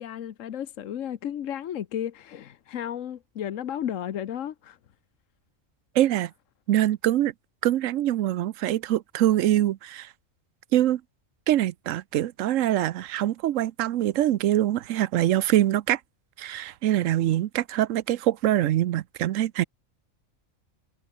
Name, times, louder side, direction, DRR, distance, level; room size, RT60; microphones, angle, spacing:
voice 1, 0.0-4.8, left 10 dB, 85° left, 1.2 m, -33 dB
voice 2, 6.0-6.3 6.7-7.3 7.6-10.1 10.7-11.0 11.5-16.0 16.4-19.6, right 13 dB, 80° right, 1.0 m, -24 dB
omnidirectional pair, 1.3 m